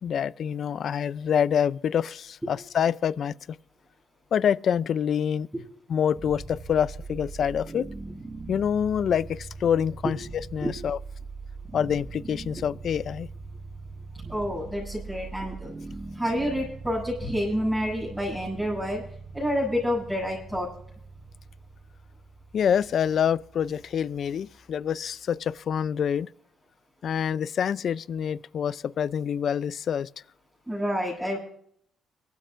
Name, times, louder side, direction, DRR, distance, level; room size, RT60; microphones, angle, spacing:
voice 1, 0.0-3.4 4.3-5.5 5.9-7.9 8.5-11.0 11.7-13.3 22.5-26.3 27.0-30.1, left 8 dB, 60° left, 0.4 m, -26 dB
sound 1, 6.1-25.2, right 3 dB, 30° right, 1.5 m, -42 dB
voice 2, 14.3-15.7 16.1-19.0 19.3-20.7 30.7-31.4, equal, ahead, 7.2 m, -28 dB
24.0 x 13.0 x 2.5 m
cardioid pair, 90°, 0 cm